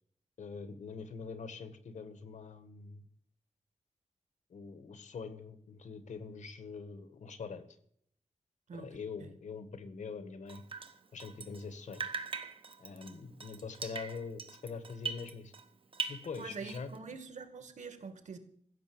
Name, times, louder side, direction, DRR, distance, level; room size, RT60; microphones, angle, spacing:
voice 1, 0.4-3.1 4.5-7.6 8.7-10.6 11.1-12.0 12.8-15.5 16.1-16.9, left 5 dB, 85° left, 10 dB, 1.6 m, -44 dB
Drip, 10.5-11.7 11.9-15.7 15.9-17.0, right 5 dB, 45° right, 1.2 m, -41 dB
voice 2, 16.4-18.4, right 5 dB, 85° right, 8 dB, 2.0 m, -45 dB
15.5 x 6.9 x 8.8 m, 0.65 s
wide cardioid pair, 140°, 12 cm